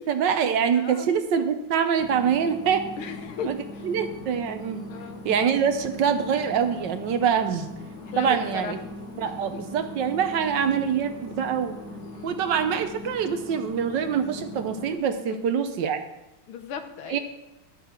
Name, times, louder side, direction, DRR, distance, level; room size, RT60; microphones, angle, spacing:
voice 1, 0.0-2.9 3.4-3.6 3.8-4.9 5.2-7.7 8.2-8.8 9.2-11.8 12.2-16.0 17.1-17.2, right 7 dB, 65° right, 9 dB, 1.4 m, -25 dB
voice 2, 0.8-1.1 3.0-3.8 4.9-5.2 8.1-8.8 9.5-9.6 12.1-12.3 15.3-15.4 16.5-17.2, left 7 dB, 85° left, 7 dB, 1.8 m, -36 dB
sound 1, 2.0-15.0, left 2 dB, 50° left, 1.7 m, -40 dB
12.0 x 9.2 x 4.4 m, 0.92 s
omnidirectional pair, 2.3 m